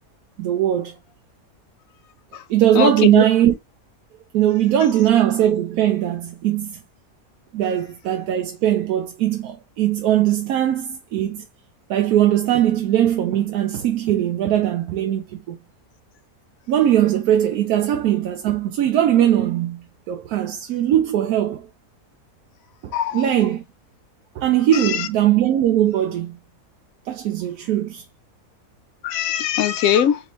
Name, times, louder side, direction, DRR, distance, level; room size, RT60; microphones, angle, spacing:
voice 1, 0.4-0.9 2.5-3.5 4.3-6.8 7.5-11.4 11.9-15.6 16.7-21.7 22.8-23.6 24.4-26.4 27.1-28.0, right 11 dB, 90° right, 1.1 m, -20 dB
voice 2, 2.8-3.2 22.9-23.2 24.8-25.0 29.0-30.2, left 9 dB, 70° left, 1.0 m, -20 dB
4.1 x 3.5 x 2.9 m
omnidirectional pair, 1.5 m